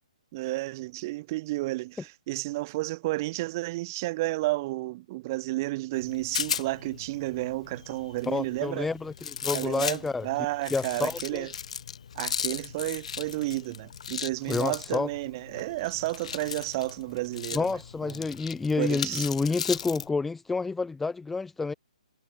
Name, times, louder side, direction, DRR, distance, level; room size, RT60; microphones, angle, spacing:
voice 1, 0.3-8.9 9.5-11.5 12.1-18.3 18.8-19.3, right 20 dB, 30° right, 1.7 m, -32 dB
Rattle, 5.9-20.1, left 7 dB, 60° left, 0.8 m, -37 dB
voice 2, 8.3-10.3 10.7-11.5 14.5-15.1 17.5-21.7, left 4 dB, 5° left, 0.7 m, -29 dB
hypercardioid pair, 160°, 4 cm